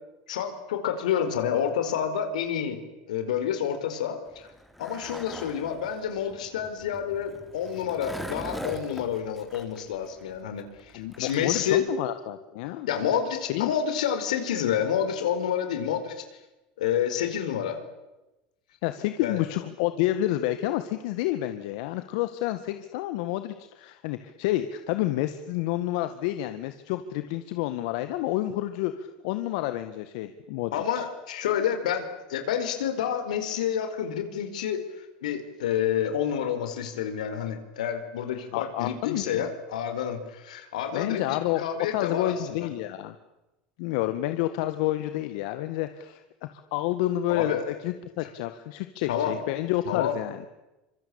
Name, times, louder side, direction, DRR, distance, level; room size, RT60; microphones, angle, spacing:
voice 1, 0.3-2.8 3.1-4.5 4.8-11.9 12.9-16.2 16.8-17.8 19.2-19.4 30.7-42.7 47.3-47.6 49.1-49.4 49.8-50.1, left 9 dB, 90° left, 8 dB, 4.9 m, -29 dB
Skateboard, 4.3-11.7, equal, ahead, 3.8 m, -41 dB
voice 2, 10.9-12.9 13.5-13.7 18.8-30.8 38.5-39.5 40.9-41.6 41.9-43.1 43.8-46.2 46.5-50.4, left 14 dB, 70° left, 9 dB, 1.8 m, -29 dB
26.0 x 24.5 x 8.8 m, 1.0 s
supercardioid pair, 105°, 4 cm